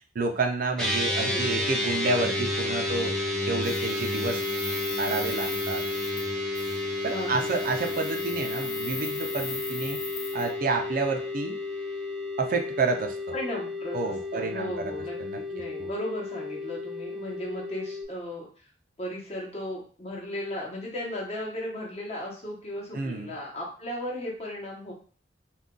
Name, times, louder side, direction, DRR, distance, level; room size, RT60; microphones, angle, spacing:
voice 1, 0.1-3.1 3.5-4.4 5.0-5.8 7.0-10.0 10.3-11.6 12.4-13.2 13.9-14.9 15.2-15.4 15.8-15.9 22.9-23.3, right 3 dB, 50° right, 4 dB, 0.4 m, -29 dB
sound 1, 0.8-18.0, left 2 dB, 5° left, 0.6 m, -31 dB
voice 2, 1.2-1.7 7.1-7.6 13.3-18.5 19.0-24.9, left 1 dB, 35° left, -2 dB, 0.9 m, -36 dB
sound 2, 3.6-6.3 6.5-6.8 7.3-10.5, left 3 dB, 60° left, 1.1 m, -39 dB
2.4 x 2.2 x 3.7 m, 0.41 s
head